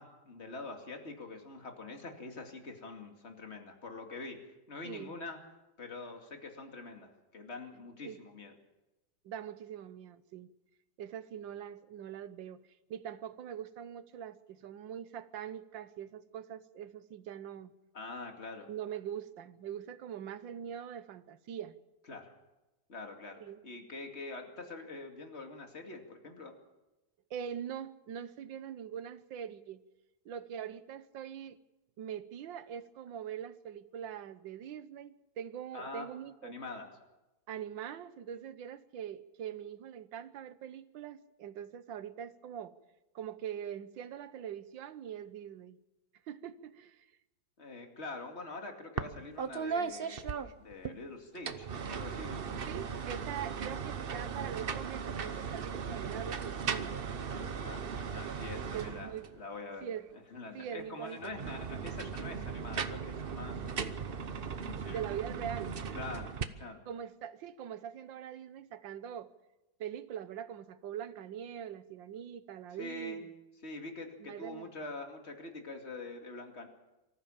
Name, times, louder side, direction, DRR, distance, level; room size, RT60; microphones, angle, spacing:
voice 1, 0.0-4.4 4.7-5.4 5.8-8.5 17.9-18.7 22.1-22.3 22.9-26.5 35.7-36.1 36.4-36.9 47.6-52.6 57.3-59.9 60.3-64.3 64.6-65.0 65.9-66.8 72.8-73.2 73.6-76.7, left 3 dB, 35° left, 3 dB, 2.7 m, -45 dB
voice 2, 4.8-5.2 8.0-8.2 9.2-10.5 11.0-12.6 12.9-17.7 18.7-21.8 23.4-23.6 27.3-29.8 30.2-31.6 32.0-36.5 37.5-42.7 43.1-45.8 46.3-47.1 52.6-56.9 58.7-59.3 59.8-60.1 60.5-61.3 64.9-65.8 66.9-69.3 69.8-73.3 74.2-74.7, right 9 dB, 75° right, 14 dB, 1.6 m, -43 dB
sound 1, 49.0-49.1 49.4-50.9 51.3-59.4 61.2-66.4, right 6 dB, 45° right, 0.7 m, -37 dB
25.0 x 14.0 x 7.3 m, 1.0 s
omnidirectional pair, 2.1 m